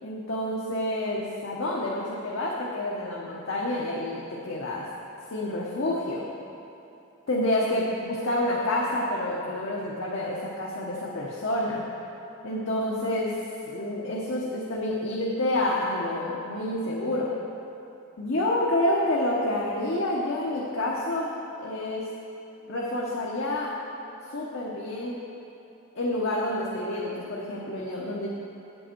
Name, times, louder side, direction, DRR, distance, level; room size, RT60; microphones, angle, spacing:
voice 1, 0.0-4.9 5.3-6.3 7.3-11.9 12.4-17.4 18.2-22.2 22.7-23.8 24.3-25.2 25.9-28.3, left 1 dB, 60° left, -5 dB, 0.9 m, -28 dB
8.4 x 7.8 x 4.4 m, 2.9 s
head